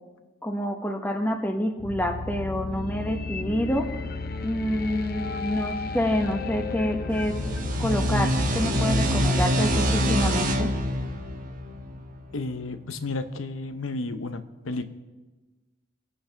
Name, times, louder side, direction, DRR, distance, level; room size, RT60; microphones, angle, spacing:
voice 1, 0.4-3.9 4.4-7.3 7.8-10.7, equal, 10° left, 4 dB, 1.0 m, -27 dB
sound 1, 1.8-12.7, left 3 dB, 45° left, 0.7 m, -34 dB
sound 2, 7.1-12.5, equal, 40° right, 1.2 m, -25 dB
voice 2, 12.3-14.9, left 2 dB, 80° left, 10 dB, 0.9 m, -32 dB
24.5 x 8.8 x 3.4 m, 1.2 s
head